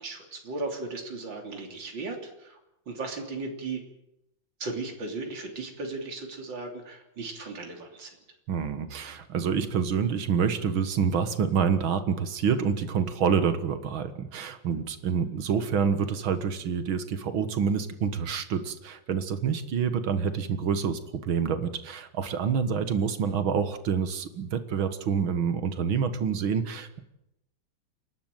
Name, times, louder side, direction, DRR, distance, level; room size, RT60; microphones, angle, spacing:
voice 1, 0.0-2.6 2.9-3.8 4.6-8.2, right 3 dB, 65° right, 2 dB, 3.9 m, -36 dB
voice 2, 8.5-27.0, right 6 dB, 80° right, 11 dB, 2.3 m, -27 dB
28.0 x 12.0 x 9.1 m, 0.86 s
omnidirectional pair, 2.2 m